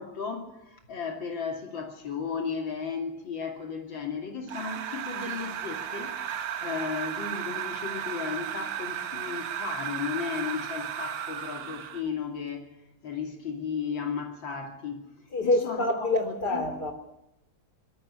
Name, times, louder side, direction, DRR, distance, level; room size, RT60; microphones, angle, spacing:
voice 1, 0.0-6.2 6.6-12.7 13.0-15.0 15.4-16.6, left 6 dB, 85° left, 3.3 m, -35 dB
sound 1, 4.5-12.1, right 9 dB, 80° right, 1.8 m, -35 dB
voice 2, 15.3-16.9, left 2 dB, 55° left, 4.1 m, -26 dB
21.0 x 14.0 x 10.0 m
omnidirectional pair, 2.0 m